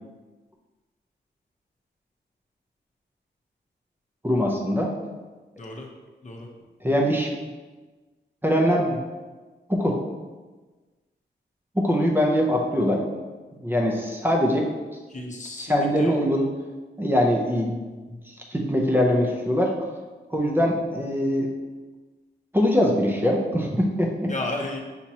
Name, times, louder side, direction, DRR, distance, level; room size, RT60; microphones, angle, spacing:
voice 1, 4.2-4.9 6.8-7.3 8.4-9.0 9.7-10.0 11.7-13.0 13.6-14.7 15.6-16.5 17.0-19.7 20.3-21.5 22.5-24.3, equal, 10° right, -1 dB, 0.6 m, -22 dB
voice 2, 15.1-16.1 24.3-24.8, left 2 dB, 40° left, 0 dB, 0.7 m, -33 dB
5.9 x 2.9 x 2.8 m, 1.3 s
wide cardioid pair, 90°, 18 cm